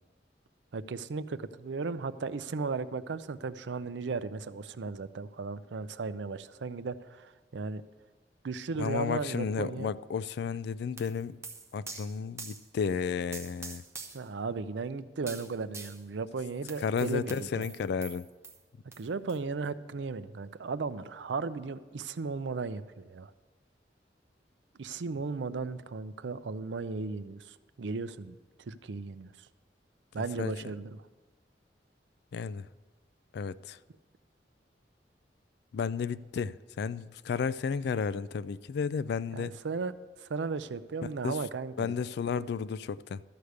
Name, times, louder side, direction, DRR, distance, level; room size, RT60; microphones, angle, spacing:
voice 1, 0.7-7.8 8.4-9.9 14.1-17.6 19.0-23.3 24.8-29.3 30.1-31.0 39.3-39.9 40.2-42.0, right 4 dB, 80° right, 0.5 m, -36 dB
voice 2, 8.8-11.4 11.7-13.8 16.8-18.3 30.4-30.5 32.3-32.7 33.3-33.8 35.7-39.6 41.2-41.4 41.8-43.2, left 6 dB, 65° left, 0.3 m, -32 dB
sound 1, 11.0-12.7 13.3-14.3 15.3-16.0 16.7-18.6 18.9-19.0 19.3-19.4, right 4 dB, 15° right, 1.0 m, -45 dB
13.0 x 5.0 x 8.1 m
head